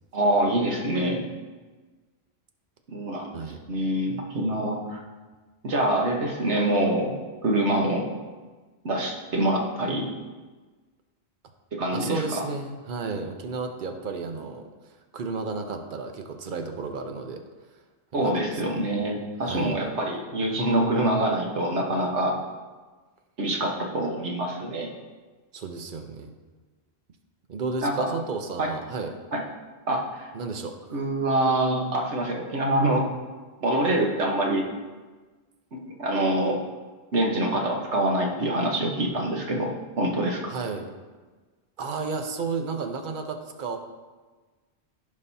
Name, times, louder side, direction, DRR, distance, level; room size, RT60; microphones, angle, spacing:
voice 1, 0.1-1.2 2.9-3.3 3.7-5.0 5.6-7.1 7.4-8.1 8.8-10.1 11.7-12.4 18.1-22.3 23.4-24.9 27.8-28.1 28.6-28.7 29.3-29.4 29.9-30.3 30.9-33.1 33.6-34.6 35.8-36.6 37.1-39.7 40.0-40.4, right 1 dB, 85° right, 0 dB, 1.6 m, -25 dB
voice 2, 11.9-14.7 15.1-17.4 18.1-18.6 19.4-19.7 25.5-26.3 27.5-29.1 30.3-30.7 40.5-40.9 41.8-43.8, right 4 dB, 50° right, 5 dB, 0.9 m, -32 dB
15.0 x 5.4 x 2.8 m, 1.3 s
omnidirectional pair, 1.1 m